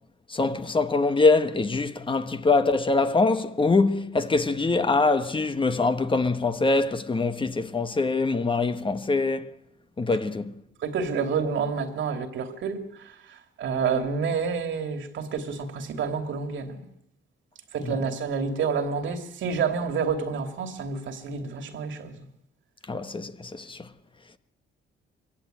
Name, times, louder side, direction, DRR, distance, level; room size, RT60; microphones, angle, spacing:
voice 1, 0.3-9.5 10.0-10.5 17.8-18.0 22.9-23.9, left 3 dB, 25° left, 1.3 m, -24 dB
voice 2, 10.8-16.8 17.7-22.1, right 5 dB, 70° right, 2.8 m, -29 dB
23.0 x 16.0 x 9.2 m
cardioid pair, 90°, 20 cm